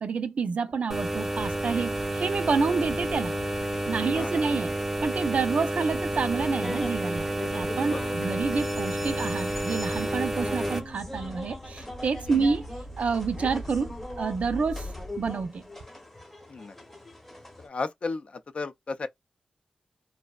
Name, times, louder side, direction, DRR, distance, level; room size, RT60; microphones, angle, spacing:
voice 1, 0.0-3.3 3.9-4.7 5.0-7.3 7.5-12.6 13.0-14.9 15.2-15.7, right 5 dB, 65° right, 0.5 m, -28 dB
sound 1, 0.5-15.6, left 1 dB, 85° left, 0.9 m, -45 dB
sound 2, 0.9-10.8, right 1 dB, 10° right, 0.6 m, -30 dB
sound 3, 1.5-17.7, left 1 dB, 10° left, 0.9 m, -42 dB
voice 2, 4.1-4.5 7.9-8.1 12.3-12.5 16.5-16.8 17.6-19.1, left 3 dB, 55° left, 0.4 m, -34 dB
2.6 x 2.1 x 2.3 m
wide cardioid pair, 95°, 2 cm